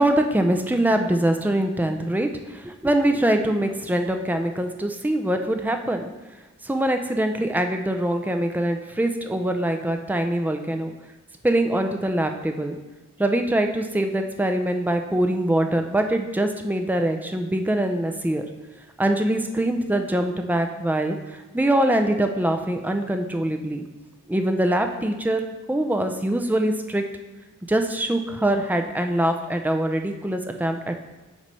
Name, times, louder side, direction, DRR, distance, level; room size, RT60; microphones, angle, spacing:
voice 1, 0.0-6.1 6.6-10.9 11.4-12.8 13.2-18.4 19.0-23.8 24.3-25.4 25.7-27.0 27.7-31.0, right 1 dB, 10° right, 5 dB, 0.4 m, -23 dB
8.2 x 3.2 x 5.3 m, 1.1 s
head